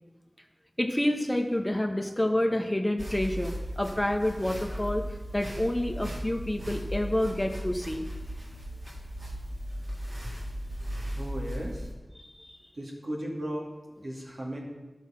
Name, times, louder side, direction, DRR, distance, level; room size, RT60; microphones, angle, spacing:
voice 1, 0.8-5.1 5.3-8.1 12.2-12.6, left 1 dB, 15° left, 4 dB, 1.0 m, -28 dB
sound 1, 3.0-11.9, equal, 40° right, 2.3 m, -37 dB
voice 2, 11.1-11.9 12.7-13.7 14.0-14.6, right 1 dB, 70° right, -2 dB, 2.4 m, -36 dB
12.5 x 6.2 x 5.8 m, 1.1 s
wide cardioid pair, 65°, 0 cm